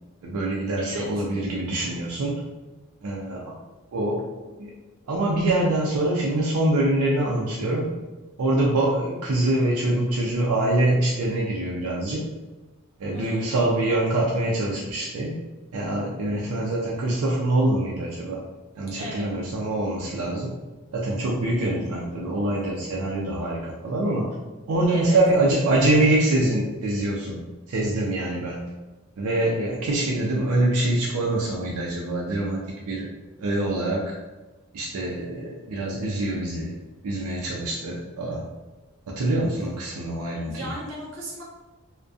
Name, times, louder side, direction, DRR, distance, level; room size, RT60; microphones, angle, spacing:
voice 1, 0.2-2.4 3.0-3.5 3.9-4.2 4.6-4.8 5.1-7.9 8.4-12.2 13.0-15.3 15.7-18.4 18.7-20.5 20.9-24.3 24.7-27.4 27.7-28.7 29.2-32.6 32.9-33.1 33.4-34.1 34.7-36.7 37.0-38.4 39.1-40.7, right 1 dB, 85° right, -3 dB, 0.4 m, -24 dB
voice 2, 0.8-1.2 13.1-13.5 19.0-19.3 24.9-25.2 40.5-41.4, right 1 dB, 55° right, -4 dB, 0.7 m, -36 dB
2.3 x 2.2 x 2.5 m, 1.2 s
head